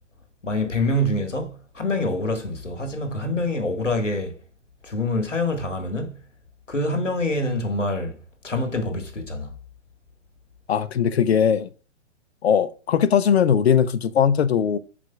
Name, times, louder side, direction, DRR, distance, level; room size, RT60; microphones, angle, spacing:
voice 1, 0.4-4.4 4.8-6.1 6.7-8.2 8.4-9.5, left 1 dB, 85° left, 1.7 m, -25 dB
voice 2, 10.7-11.7 12.4-14.8, left 8 dB, 60° left, 0.7 m, -19 dB
11.0 x 4.9 x 2.3 m
figure-of-eight pair, 120°, 36 cm